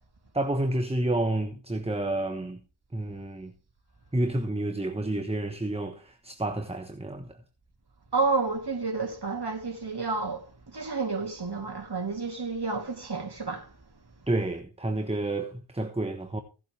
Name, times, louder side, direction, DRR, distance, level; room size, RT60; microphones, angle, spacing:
voice 1, 0.3-2.6 2.9-3.5 4.1-7.4 14.3-16.4, right 1 dB, 10° right, 1.2 m, -29 dB
voice 2, 8.1-13.7, right 3 dB, 50° right, 3.0 m, -30 dB
17.5 x 7.8 x 3.4 m
wide cardioid pair, 50°, 49 cm